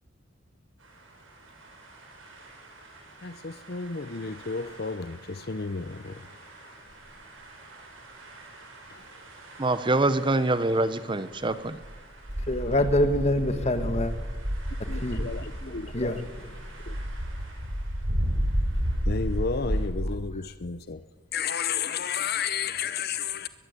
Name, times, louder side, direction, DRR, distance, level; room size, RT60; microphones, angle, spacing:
sound 1, 1.6-19.9, equal, 80° right, 6.9 m, -34 dB
voice 1, 3.2-6.5 8.9-9.2 14.9-15.9 16.9-17.0 19.0-21.0 21.3-23.5, left 6 dB, 50° left, 0.7 m, -32 dB
voice 2, 9.6-11.8, right 2 dB, 25° right, 0.8 m, -25 dB
voice 3, 12.5-14.1 14.8-15.3 15.6-16.5, left 1 dB, 35° left, 1.8 m, -26 dB
22.0 x 20.5 x 8.4 m
head